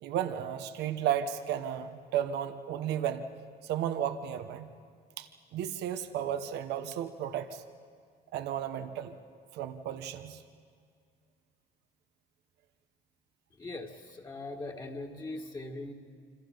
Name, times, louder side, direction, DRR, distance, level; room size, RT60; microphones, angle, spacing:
voice 1, 0.0-3.3 3.6-4.7 5.2-7.6 8.3-9.2 9.5-10.4, right 10 dB, 85° right, 8 dB, 1.2 m, -33 dB
voice 2, 13.6-15.9, left 2 dB, 25° left, 2 dB, 2.1 m, -40 dB
27.0 x 26.0 x 5.3 m, 2.1 s
cardioid pair, 110°, 17 cm